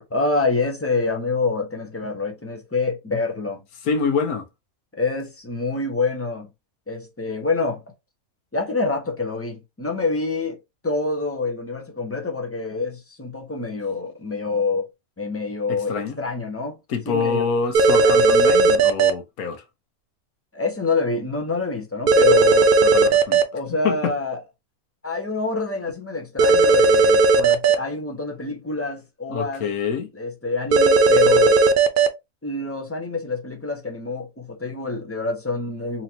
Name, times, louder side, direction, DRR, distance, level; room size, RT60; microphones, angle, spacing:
voice 1, 0.1-3.6 5.0-6.5 6.9-7.8 8.5-10.6 10.8-14.9 15.2-16.8 17.1-17.4 18.0-18.3 20.5-22.7 23.5-24.4 25.0-29.7 30.1-31.6 32.4-36.0, left 3 dB, 15° left, 0.5 m, -26 dB
voice 2, 3.8-4.5 15.7-16.2 16.9-19.6 22.8-23.4 23.8-24.1 29.3-30.1, left 5 dB, 80° left, 1.2 m, -26 dB
sound 1, 17.7-19.1 22.1-23.4 26.4-27.7 30.7-32.1, right 3 dB, 70° right, 0.5 m, -15 dB
4.1 x 2.9 x 2.7 m
omnidirectional pair, 1.5 m